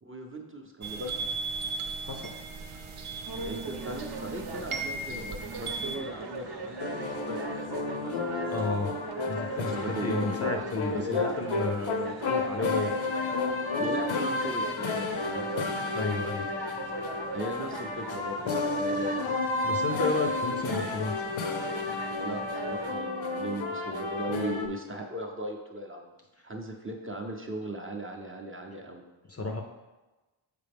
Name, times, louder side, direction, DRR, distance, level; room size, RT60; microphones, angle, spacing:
voice 1, 0.0-1.3 3.4-8.1 9.7-10.6 10.9-11.7 12.2-12.9 13.8-15.5 17.3-19.4 22.2-26.1 26.4-29.0, right 1 dB, 25° right, 1 dB, 0.6 m, -38 dB
sound 1, 0.8-6.0, right 4 dB, 85° right, 0.8 m, -36 dB
voice 2, 2.0-2.4 8.5-8.9 9.3-13.0 15.9-16.5 19.6-21.3 29.3-29.6, left 3 dB, 30° left, 2 dB, 0.5 m, -32 dB
sound 2, 3.3-22.9, right 3 dB, 50° right, 0.8 m, -40 dB
sound 3, 6.8-24.7, left 3 dB, 70° left, 0.7 m, -31 dB
6.7 x 5.0 x 3.4 m, 1.1 s
wide cardioid pair, 140°, 49 cm